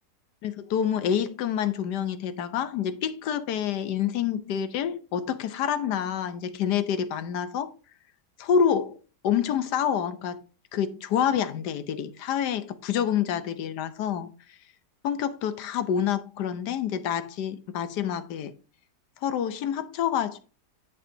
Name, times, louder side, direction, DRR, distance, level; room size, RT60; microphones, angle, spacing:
voice 1, 0.4-7.7 8.4-9.0 9.2-10.4 10.7-14.3 15.0-18.5 19.2-20.4, left 8 dB, 70° left, 1.3 m, -27 dB
8.5 x 7.2 x 2.7 m
omnidirectional pair, 1.9 m